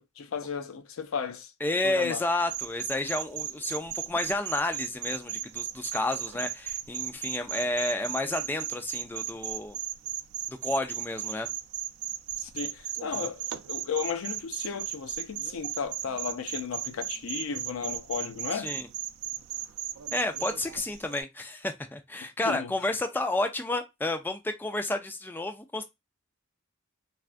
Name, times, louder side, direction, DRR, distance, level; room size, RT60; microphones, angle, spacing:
voice 1, 0.0-1.5 1.8-2.2 12.4-18.7 22.4-22.7, left 6 dB, 75° left, 0.5 m, -34 dB
voice 2, 1.6-9.8 10.6-11.5 13.1-13.3 18.5-18.9 20.1-25.8, left 2 dB, 10° left, 0.3 m, -31 dB
sound 1, 2.5-21.2, right 11 dB, 85° right, 0.4 m, -36 dB
3.4 x 2.3 x 2.5 m
head